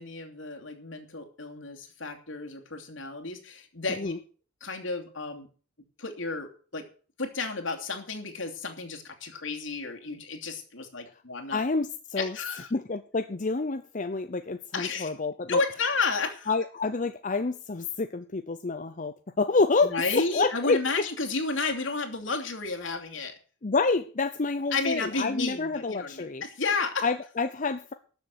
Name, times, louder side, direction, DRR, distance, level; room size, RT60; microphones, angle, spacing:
voice 1, 0.0-4.1 4.6-5.5 6.0-6.8 7.2-11.6 12.2-12.7 14.7-15.1 15.5-16.5 19.8-23.3 24.7-27.0, left 4 dB, 75° left, 3 dB, 2.9 m, -32 dB
voice 2, 11.5-12.3 12.7-15.6 16.5-19.9 20.3-20.8 23.6-26.4 27.0-27.9, left 3 dB, 40° left, 9 dB, 0.7 m, -28 dB
13.0 x 7.3 x 8.0 m, 0.40 s
head